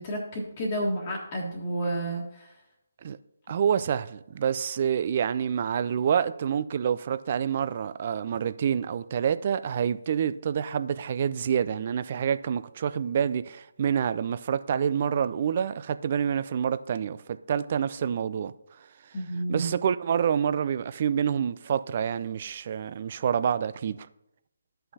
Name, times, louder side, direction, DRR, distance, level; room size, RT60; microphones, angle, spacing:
voice 1, 0.0-2.5 19.1-19.7, right 1 dB, 35° left, 1.4 m, -31 dB
voice 2, 3.5-18.5 19.5-24.1, right 8 dB, 40° right, 0.3 m, -27 dB
14.0 x 5.5 x 2.8 m
figure-of-eight pair, 145°, 0 cm